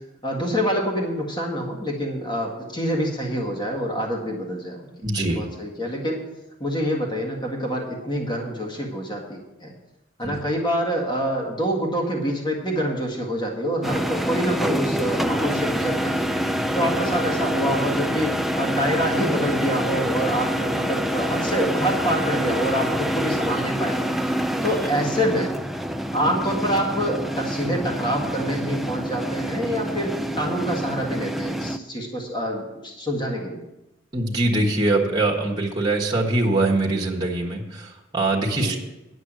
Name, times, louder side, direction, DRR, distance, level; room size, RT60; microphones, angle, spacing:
voice 1, 0.2-4.9 5.4-6.2 6.6-9.7 10.2-16.3 16.8-24.3 24.6-25.5 26.1-33.6 38.5-38.8, equal, 25° left, 0 dB, 1.9 m, -26 dB
voice 2, 5.0-5.4 10.2-10.3 34.1-38.7, right 2 dB, 20° right, -1 dB, 1.4 m, -23 dB
sound 1, 13.8-31.8, equal, ahead, 0.4 m, -26 dB
10.5 x 6.2 x 7.5 m, 0.97 s
head